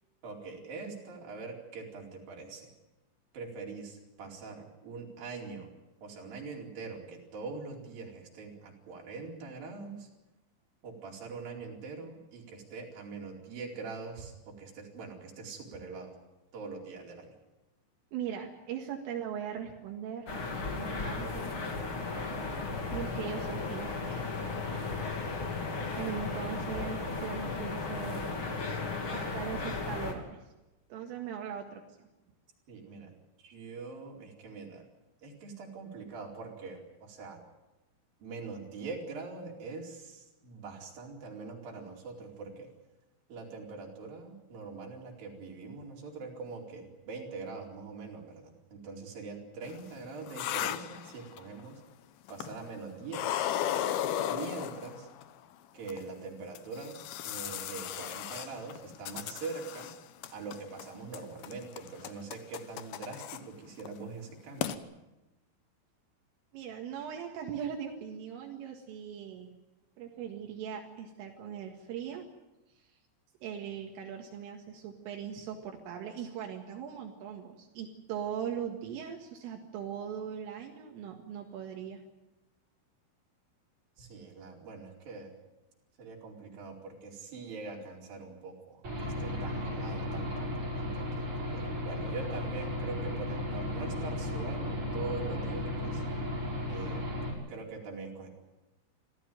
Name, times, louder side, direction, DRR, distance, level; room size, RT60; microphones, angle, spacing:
voice 1, 0.2-2.7 3.3-5.7 6.0-10.1 10.8-16.1 16.5-17.3 32.7-33.1 33.4-34.8 35.2-37.4 38.2-42.7 43.3-51.8 52.3-53.5 54.3-55.1 55.7-59.9 60.3-64.8 84.0-85.3 86.0-96.0 96.7-97.0 97.5-98.3, right 4 dB, 45° right, -1 dB, 5.8 m, -43 dB
voice 2, 18.1-20.3 20.7-21.5 22.9-24.3 26.0-28.3 29.1-30.5 30.9-32.1 66.5-69.5 70.0-72.3 73.4-82.0, right 8 dB, 75° right, 2 dB, 4.4 m, -40 dB
sound 1, 20.3-30.1, left 3 dB, 30° left, 2.8 m, -35 dB
sound 2, 49.7-51.6 52.3-52.8 53.1-55.2 55.9-56.0 56.5-60.0 60.2-60.9 61.1-63.4 63.8-64.0 64.3-64.4 64.6-64.8, left 11 dB, 75° left, 2.2 m, -35 dB
Aircraft / Engine, 88.8-97.3, left 1 dB, 25° right, 6.6 m, -35 dB
26.0 x 16.0 x 9.2 m, 1.0 s
omnidirectional pair, 5.9 m